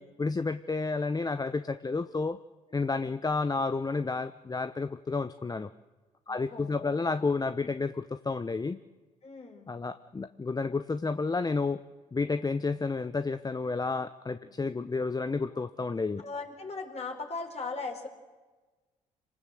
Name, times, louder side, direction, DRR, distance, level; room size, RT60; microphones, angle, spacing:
voice 1, 0.2-2.4 2.7-5.7 6.3-8.8 9.7-11.8 12.1-16.2, left 4 dB, 25° left, 11 dB, 0.8 m, -31 dB
voice 2, 6.3-7.1 9.2-9.7 14.4-14.5 15.5-15.6 16.2-18.1, left 4 dB, 40° left, 4 dB, 4.6 m, -39 dB
26.5 x 19.0 x 7.8 m, 1.3 s
hypercardioid pair, 55°, 17 cm